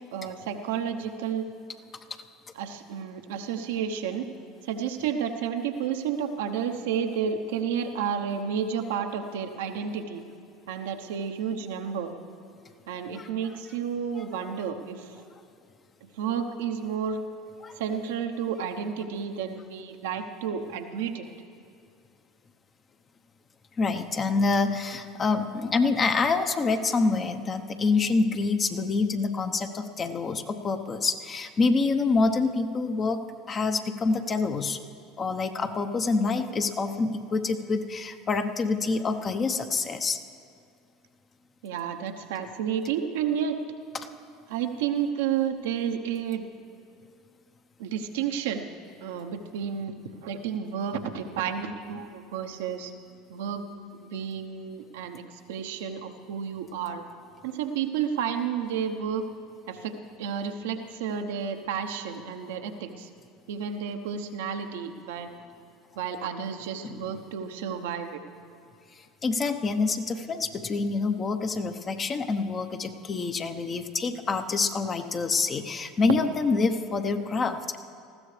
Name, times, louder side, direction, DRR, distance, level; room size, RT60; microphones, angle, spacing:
voice 1, 0.1-1.4 2.5-4.3 4.6-10.2 10.7-12.1 12.9-15.1 16.2-17.2 17.8-21.3 41.6-43.6 44.5-46.5 47.8-48.7 49.0-49.9 50.2-52.9 53.3-53.6 54.0-55.2 55.5-57.0 57.4-59.2 59.7-63.1 63.5-65.3 66.0-68.2, right 7 dB, 80° right, 5 dB, 0.9 m, -31 dB
voice 2, 23.8-33.2 33.5-34.8 35.2-40.2 66.8-67.0 69.2-77.8, left 4 dB, 35° left, 7 dB, 0.9 m, -26 dB
19.5 x 15.0 x 3.3 m, 2.4 s
hypercardioid pair, 80°, 0 cm